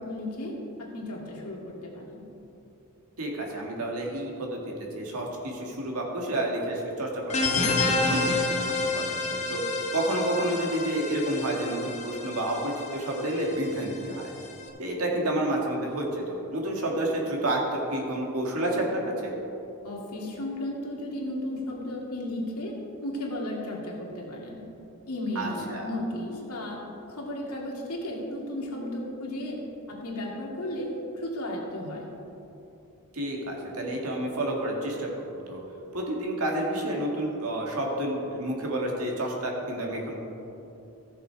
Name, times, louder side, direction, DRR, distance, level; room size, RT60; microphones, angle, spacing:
voice 1, 0.0-2.2 19.8-22.8 23.0-24.6 25.1-26.8 27.1-29.6 29.9-32.0, left 1 dB, 90° left, -2 dB, 2.1 m, -34 dB
voice 2, 3.2-14.3 14.8-19.3 25.4-25.9 33.1-35.6 35.9-40.2, right 1 dB, 75° right, -1 dB, 2.0 m, -30 dB
sound 1, 7.3-14.6, left 3 dB, 30° left, 1.0 m, -29 dB
14.5 x 6.8 x 4.7 m, 3.0 s
head